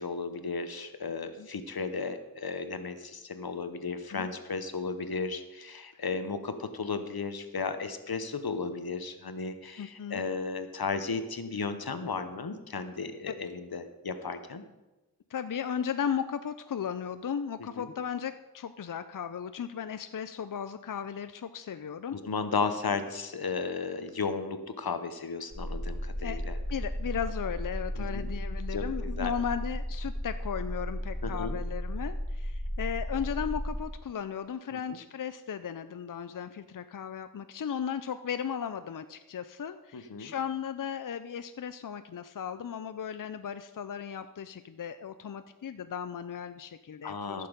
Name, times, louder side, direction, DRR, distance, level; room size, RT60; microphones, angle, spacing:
voice 1, 0.0-14.6 17.6-17.9 22.1-26.6 27.9-28.3 28.7-29.3 31.2-31.6 34.7-34.8 39.9-40.3 47.0-47.5, left 4 dB, 90° left, 10 dB, 0.9 m, -34 dB
voice 2, 9.8-10.2 13.3-13.4 15.3-22.2 26.2-26.4 26.7-47.5, left 8 dB, 60° left, 11 dB, 0.5 m, -36 dB
sound 1, 25.5-33.8, equal, 10° right, 4.5 m, -34 dB
14.5 x 6.7 x 5.1 m, 1.1 s
wide cardioid pair, 45°, 36 cm